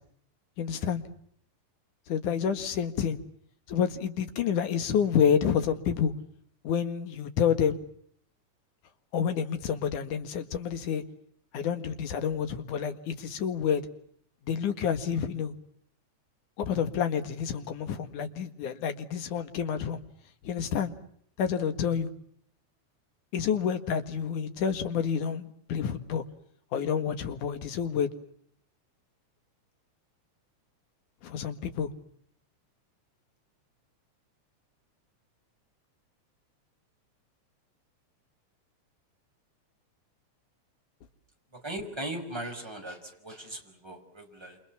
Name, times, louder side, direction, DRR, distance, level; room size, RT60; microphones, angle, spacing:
voice 1, 0.6-1.0 2.1-3.2 3.7-6.1 6.6-7.8 9.1-11.0 11.5-13.8 14.4-15.5 16.6-20.0 20.4-20.9 21.4-22.1 23.3-26.2 26.7-28.1 31.2-31.9, left 7 dB, 85° left, 9 dB, 3.3 m, -28 dB
voice 2, 41.5-44.6, right 1 dB, 10° right, 3 dB, 5.3 m, -39 dB
28.0 x 28.0 x 7.2 m, 0.66 s
omnidirectional pair, 3.4 m